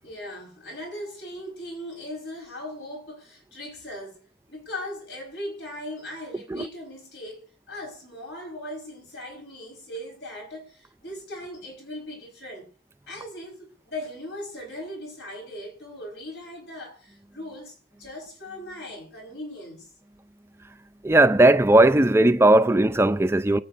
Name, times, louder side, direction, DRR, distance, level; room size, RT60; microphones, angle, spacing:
voice 1, 0.0-4.2 4.5-12.7 13.1-19.9, left 1 dB, 75° left, 5.0 m, -39 dB
voice 2, 21.0-23.6, right 1 dB, 15° right, 0.5 m, -17 dB
24.5 x 8.8 x 2.6 m
head